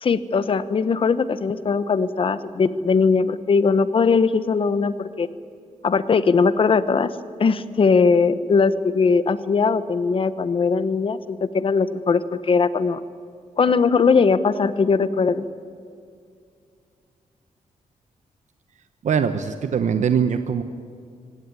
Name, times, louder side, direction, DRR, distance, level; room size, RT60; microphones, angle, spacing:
voice 1, 0.0-5.3 5.8-7.1 7.4-13.0 13.6-15.4, left 5 dB, 40° left, 14 dB, 0.9 m, -20 dB
voice 2, 19.0-20.6, right 7 dB, 60° right, 9 dB, 1.0 m, -22 dB
25.5 x 17.0 x 9.6 m, 2.3 s
wide cardioid pair, 155°, 14 cm